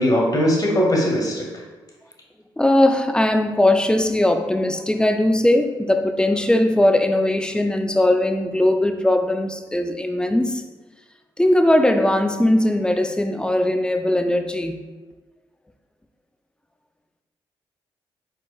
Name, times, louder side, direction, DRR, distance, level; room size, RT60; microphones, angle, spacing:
voice 1, 0.0-1.4, equal, 35° left, -2 dB, 1.5 m, -19 dB
voice 2, 2.6-10.6 11.4-14.8, left 1 dB, 10° left, 7 dB, 0.4 m, -19 dB
4.4 x 4.3 x 2.3 m, 1.3 s
supercardioid pair, 50°, 11 cm